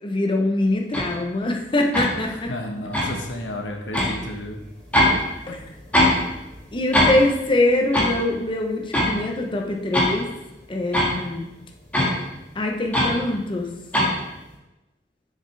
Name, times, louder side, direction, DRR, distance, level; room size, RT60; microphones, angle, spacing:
voice 1, 0.0-2.5 5.5-5.6 6.7-10.2 10.7-11.5 12.5-13.7, left 2 dB, 30° left, 1 dB, 0.9 m, -23 dB
sound 1, 0.9-1.1 1.9-2.1 2.9-3.1 3.9-4.1 4.9-5.2 5.4-6.2 6.5-6.6 6.9-7.2 7.9-8.1 8.9-9.1 9.7-10.1 10.9-11.1 11.9-12.1 12.9-13.2 13.9-14.1, left 1 dB, 10° left, 1.8 m, -19 dB
voice 2, 2.3-4.6 5.5-5.6, left 1 dB, 85° left, 3 dB, 1.1 m, -32 dB
7.3 x 6.6 x 3.4 m, 0.95 s
head